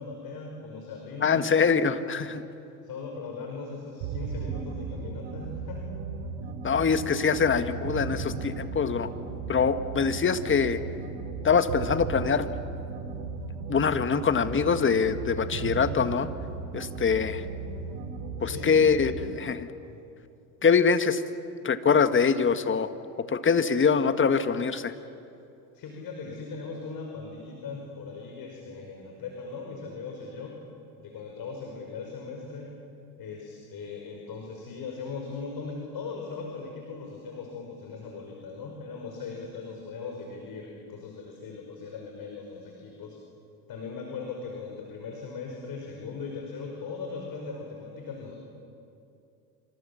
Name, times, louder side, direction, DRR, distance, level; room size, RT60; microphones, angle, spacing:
voice 1, 0.0-1.4 2.8-5.8 18.4-18.8 19.8-20.0 25.7-30.5 31.0-32.7 33.2-43.2 43.7-48.4, left 4 dB, 50° left, 1 dB, 5.4 m, -39 dB
voice 2, 1.2-2.4 6.6-9.1 9.5-10.8 11.4-12.5 13.7-16.3 16.7-17.4 18.4-19.7 20.6-21.2 21.6-22.9 23.3-24.9, left 6 dB, 25° left, 10 dB, 1.7 m, -24 dB
sound 1, 4.0-19.4, right 5 dB, 65° right, 2.8 m, -36 dB
30.0 x 26.0 x 7.2 m, 2.6 s
hypercardioid pair, 75°, 47 cm